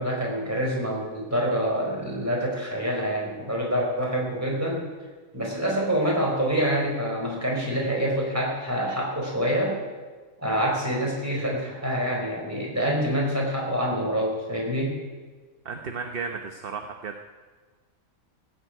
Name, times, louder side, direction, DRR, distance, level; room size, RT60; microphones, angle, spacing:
voice 1, 0.0-4.9 5.3-9.8 10.4-15.0, equal, 10° right, -3 dB, 4.8 m, -26 dB
voice 2, 15.6-17.2, right 5 dB, 45° right, 5 dB, 1.0 m, -34 dB
17.0 x 8.0 x 9.2 m, 1.4 s
omnidirectional pair, 1.5 m